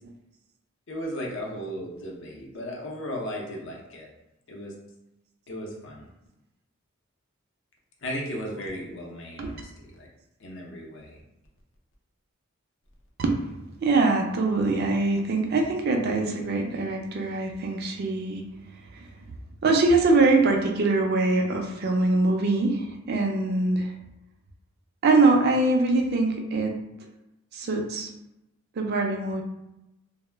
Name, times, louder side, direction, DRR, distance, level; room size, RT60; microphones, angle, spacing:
voice 1, 0.9-4.1 4.5-4.7 5.5-6.1 8.0-10.1 10.4-11.2, equal, 65° left, -1 dB, 0.6 m, -36 dB
voice 2, 13.8-18.4 19.6-23.9 25.0-26.8 27.5-28.1 28.8-29.4, right 3 dB, 50° right, 3 dB, 0.4 m, -23 dB
2.2 x 2.0 x 3.2 m, 0.92 s
head